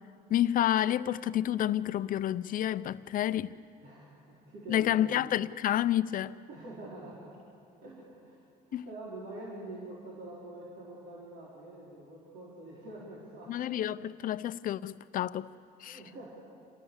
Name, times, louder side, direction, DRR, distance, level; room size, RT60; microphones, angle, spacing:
voice 1, 0.3-3.6 4.7-6.3 8.7-8.8 13.5-15.5 15.8-16.0, left 11 dB, 55° left, 0.6 m, -29 dB
voice 2, 3.8-5.1 6.5-7.3 7.8-8.4 8.7-13.8 15.8-16.3, right 1 dB, 80° right, 4.7 m, -46 dB
27.0 x 18.0 x 7.3 m
cardioid pair, 110°, 17 cm